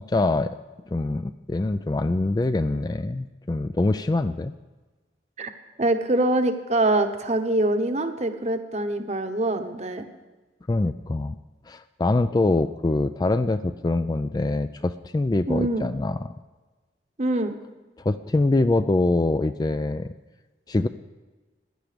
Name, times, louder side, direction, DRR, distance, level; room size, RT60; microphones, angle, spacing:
voice 1, 0.1-0.5 0.9-4.5 10.7-11.4 11.7-16.3 18.0-20.1 20.7-20.9, left 2 dB, 20° left, 11 dB, 0.3 m, -24 dB
voice 2, 5.8-10.1 15.5-15.9 17.2-17.6, right 1 dB, 35° right, 8 dB, 1.0 m, -24 dB
15.5 x 10.5 x 5.1 m, 1.2 s
head